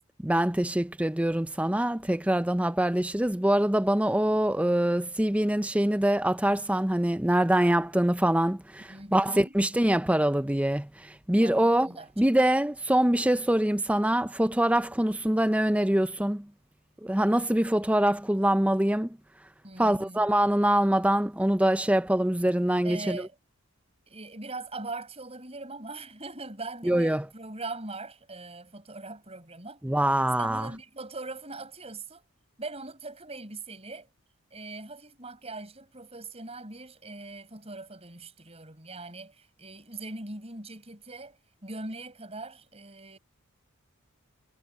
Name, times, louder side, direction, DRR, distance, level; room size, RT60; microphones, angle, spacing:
voice 1, 0.2-16.5 17.0-19.2 19.8-23.3 26.8-27.3 29.8-30.7, right 1 dB, 5° right, 0.6 m, -24 dB
voice 2, 8.9-9.6 11.4-12.1 19.6-20.3 22.8-23.3 24.1-29.8 30.3-32.2 32.6-34.1 34.5-41.4 41.6-43.2, right 2 dB, 30° right, 6.4 m, -41 dB
head